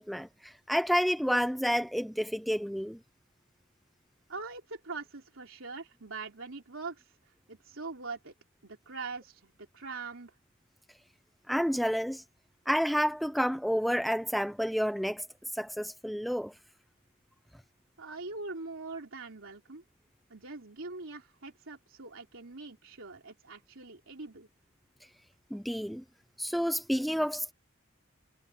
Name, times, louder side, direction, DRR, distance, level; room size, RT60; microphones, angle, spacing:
voice 1, 0.0-3.0 11.5-12.2 12.7-15.3 15.5-16.5 25.5-26.0 26.4-27.5, equal, ahead, 0.8 m, -30 dB
voice 2, 4.3-7.1 7.5-8.3 8.6-10.3 18.0-19.8 20.3-24.5, right 3 dB, 80° right, 3.2 m, -42 dB
head